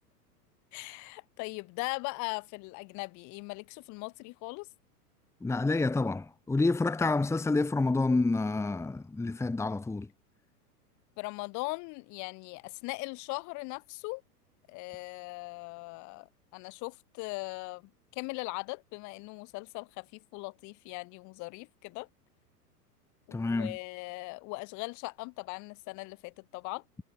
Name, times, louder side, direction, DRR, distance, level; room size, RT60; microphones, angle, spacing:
voice 1, 0.7-4.7 11.2-14.2 14.7-22.1 23.3-26.8, left 27 dB, 35° left, 3.0 m, -39 dB
voice 2, 5.4-10.1 23.3-23.8, left 3 dB, 5° left, 1.7 m, -28 dB
figure-of-eight pair, 95°, 48 cm